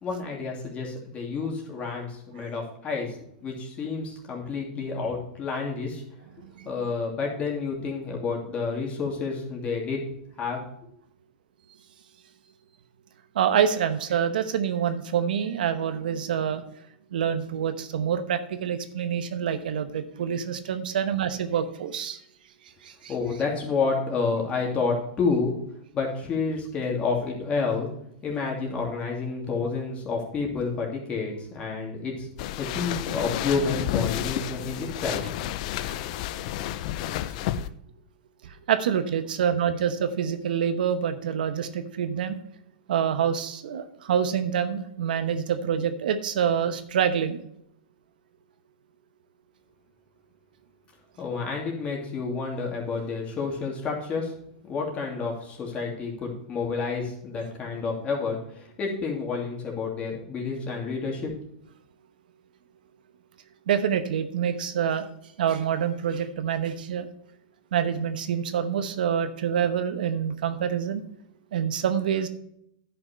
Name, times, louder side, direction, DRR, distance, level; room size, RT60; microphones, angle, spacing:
voice 1, 0.0-3.2 3.4-6.0 6.6-10.0 10.4-10.6 23.1-25.5 25.9-27.9 28.2-32.3 32.6-35.2 35.7-35.8 51.2-54.3 54.6-61.3, left 4 dB, 25° left, -1 dB, 2.7 m, -29 dB
voice 2, 13.3-16.6 17.1-22.2 22.8-23.1 35.9-36.0 37.6-37.7 38.7-42.4 42.9-47.4 63.7-65.1 65.4-67.1 67.7-71.0 71.5-72.3, right 8 dB, 75° right, 10 dB, 0.9 m, -26 dB
sound 1, 32.4-37.7, left 12 dB, 55° left, 0.5 m, -31 dB
10.5 x 5.8 x 4.4 m, 0.74 s
hypercardioid pair, 130°, 5 cm